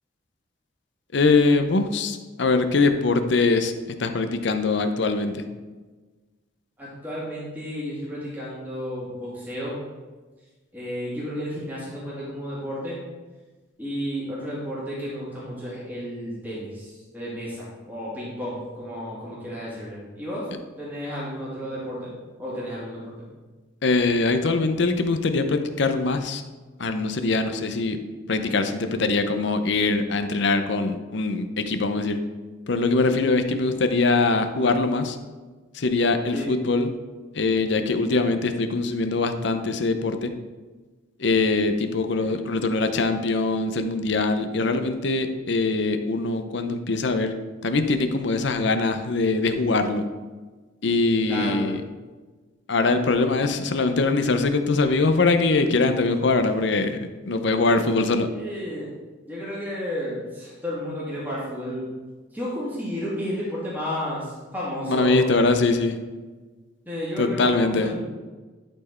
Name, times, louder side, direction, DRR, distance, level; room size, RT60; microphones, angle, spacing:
voice 1, 1.1-3.7 4.0-5.4 23.8-26.4 26.8-28.0 28.3-32.2 32.7-35.2 35.7-36.9 37.3-40.3 41.2-47.3 47.6-50.0 50.8-51.8 52.7-58.3 64.9-66.0 67.2-67.9, left 3 dB, 60° left, 8 dB, 0.7 m, -22 dB
voice 2, 6.8-9.8 10.7-13.0 13.8-20.5 20.8-22.1 22.4-23.1 36.3-36.5 42.1-42.3 51.3-51.7 58.2-58.9 59.3-61.9 62.3-65.3 66.9-68.0, equal, 10° right, -7 dB, 2.4 m, -32 dB
11.5 x 4.5 x 4.4 m, 1.3 s
head